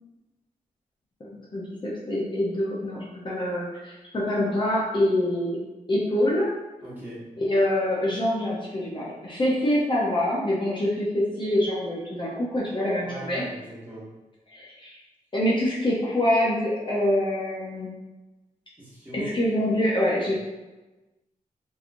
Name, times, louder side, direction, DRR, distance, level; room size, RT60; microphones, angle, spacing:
voice 1, 1.2-5.6 5.9-6.5 7.4-13.4 14.5-15.0 15.3-17.9 19.1-20.3, left 1 dB, 35° left, -6 dB, 0.7 m, -25 dB
voice 2, 6.8-7.2 13.0-14.1 18.8-19.3, right 1 dB, 15° right, -8 dB, 1.4 m, -39 dB
3.8 x 3.0 x 2.5 m, 1.1 s
wide cardioid pair, 120°, 14 cm